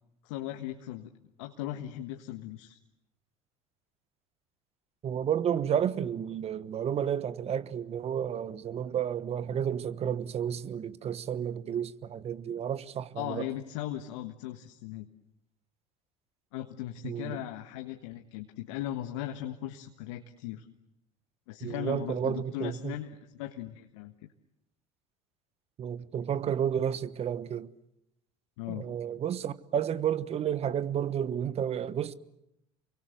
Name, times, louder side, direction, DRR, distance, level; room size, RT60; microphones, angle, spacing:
voice 1, 0.2-1.1 1.4-2.8 13.1-15.1 16.5-20.7 21.5-24.1 28.6-28.9, left 13 dB, 75° left, 1.5 m, -38 dB
voice 2, 5.0-13.4 17.0-17.4 21.6-22.9 25.8-27.7 28.7-32.1, right 9 dB, 40° right, 1.3 m, -31 dB
29.0 x 24.0 x 7.9 m
hypercardioid pair, 80°, 16 cm